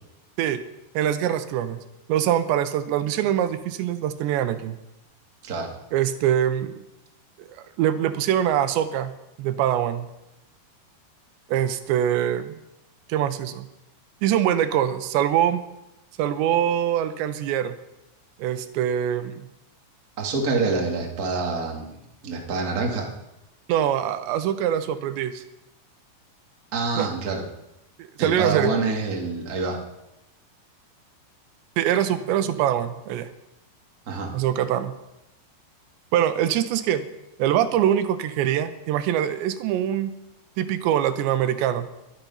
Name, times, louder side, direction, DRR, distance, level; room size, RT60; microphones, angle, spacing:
voice 1, 0.9-1.8 2.1-4.8 5.9-6.8 7.4-7.5 7.8-9.1 9.4-10.1 11.5-12.6 13.1-13.7 14.2-15.6 16.2-17.8 18.4-19.5 23.7-25.4 27.0-27.1 28.0-28.7 31.8-33.3 34.3-34.9 36.1-37.0 37.4-40.1 40.6-41.9, right 10 dB, 85° right, 10 dB, 3.1 m, -23 dB
voice 2, 20.2-22.0 22.2-23.1 26.7-27.4 28.2-29.8 34.1-34.3, right 4 dB, 30° right, 0 dB, 1.8 m, -26 dB
22.5 x 10.5 x 5.7 m, 0.93 s
omnidirectional pair, 5.1 m